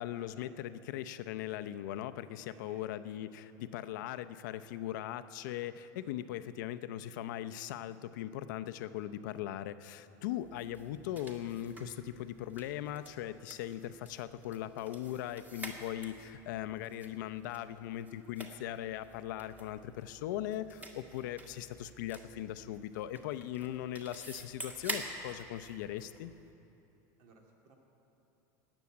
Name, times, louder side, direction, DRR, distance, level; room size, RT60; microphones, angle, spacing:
voice 1, 0.0-26.3, left 12 dB, 80° left, 11 dB, 0.6 m, -39 dB
voice 2, 2.5-2.8 3.2-3.3 10.2-10.3 27.2-27.8, right 4 dB, 65° right, 0 dB, 2.3 m, -61 dB
sound 1, 10.4-26.5, right 1 dB, 15° right, 1.7 m, -48 dB
18.0 x 7.1 x 9.6 m, 2.9 s
supercardioid pair, 130°, 10 cm